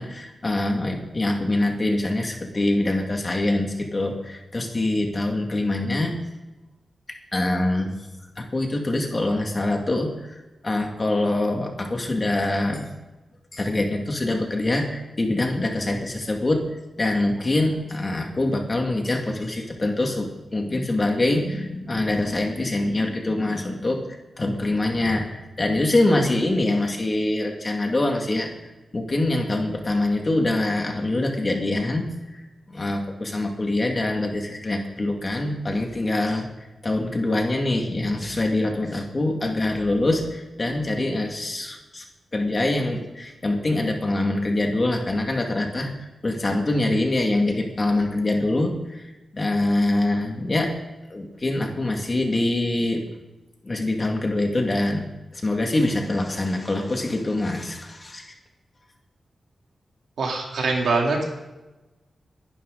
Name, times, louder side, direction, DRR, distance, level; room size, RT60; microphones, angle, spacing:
voice 1, 0.0-6.1 7.3-7.9 8.4-12.9 13.5-16.7 17.0-24.0 24.4-28.5 28.9-32.1 32.3-36.5 36.8-42.0 42.3-50.7 51.1-53.0 53.6-58.2, left 2 dB, 25° left, 2 dB, 2.2 m, -24 dB
voice 2, 60.2-61.2, right 3 dB, 85° right, -1 dB, 3.5 m, -23 dB
22.0 x 11.5 x 4.0 m, 1.1 s
wide cardioid pair, 175°, 0 cm